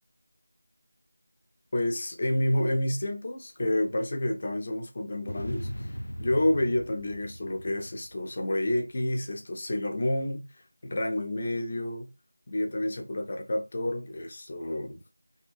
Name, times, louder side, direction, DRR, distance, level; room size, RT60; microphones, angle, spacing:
voice 1, 1.7-10.5 10.8-12.1 12.5-15.0, left 1 dB, 25° left, 0.4 m, -29 dB
sound 1, 5.3-8.8, equal, 90° left, 0.4 m, -39 dB
2.7 x 2.5 x 2.4 m
figure-of-eight pair, 175°, 0 cm